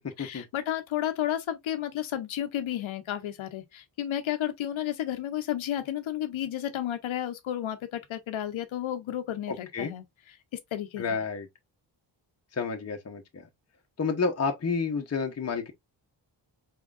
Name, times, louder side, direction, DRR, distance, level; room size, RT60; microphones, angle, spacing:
voice 1, 0.2-10.0 10.7-11.2, left 11 dB, 90° left, 0.7 m, -32 dB
voice 2, 9.5-9.9 11.0-11.5 12.5-13.5 14.0-15.7, left 4 dB, 35° left, 0.8 m, -30 dB
4.4 x 3.6 x 2.3 m
cardioid pair, 90°, 46 cm